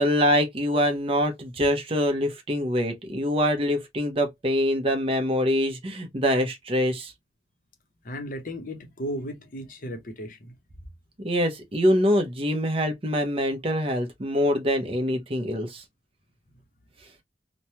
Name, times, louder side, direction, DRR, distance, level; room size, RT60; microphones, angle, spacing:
voice 1, 0.0-7.1 11.2-15.8, equal, 30° right, 0.7 m, -24 dB
voice 2, 8.0-10.6, equal, 50° left, 0.7 m, -35 dB
3.1 x 2.1 x 2.8 m
head